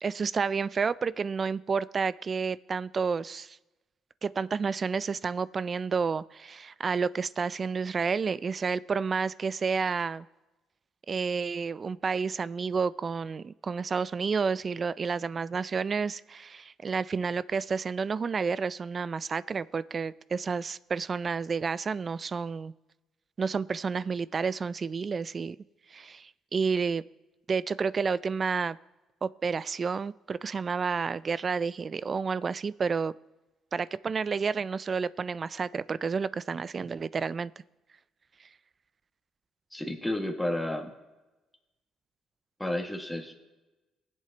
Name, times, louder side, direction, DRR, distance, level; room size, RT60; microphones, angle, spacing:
voice 1, 0.0-3.6 4.2-10.3 11.1-22.7 23.4-25.6 25.9-27.0 27.5-28.8 29.2-33.1 33.7-37.5, right 5 dB, 40° right, 18 dB, 0.4 m, -30 dB
voice 2, 39.7-40.9 42.6-43.3, left 1 dB, 5° left, 1 dB, 1.9 m, -31 dB
20.0 x 7.7 x 2.9 m, 1.1 s
supercardioid pair, 75°, 0 cm